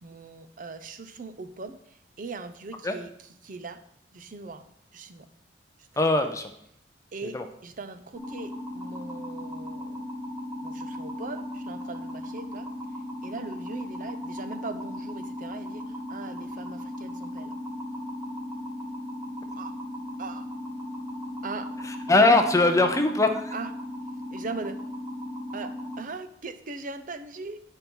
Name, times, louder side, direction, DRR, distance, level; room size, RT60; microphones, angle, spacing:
voice 1, 0.0-3.1 3.4-3.8 4.1-4.7 4.9-5.3 5.8-5.9 7.1-10.1 10.6-12.7 13.2-17.6 19.6-19.8 20.2-20.5 21.4-21.7 23.5-23.7 24.3-24.8 25.5-27.6, right 3 dB, 50° right, 10 dB, 0.6 m, -40 dB
voice 2, 6.0-6.5 7.3-7.4 22.1-23.5, left 2 dB, 15° left, 6 dB, 0.6 m, -21 dB
sound 1, 8.1-26.0, left 1 dB, 20° right, 1.7 m, -37 dB
9.5 x 4.5 x 5.3 m, 0.71 s
head